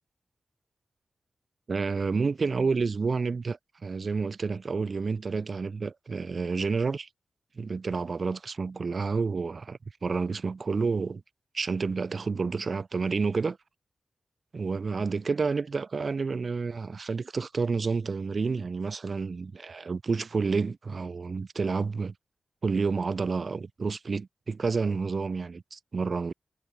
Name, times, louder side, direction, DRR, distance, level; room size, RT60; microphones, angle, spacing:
voice 1, 1.7-7.1 7.6-11.2 11.5-13.6 14.5-22.1 22.6-26.3, right 4 dB, 60° right, 0.4 m, -29 dB
cardioid pair, 50°, 0 cm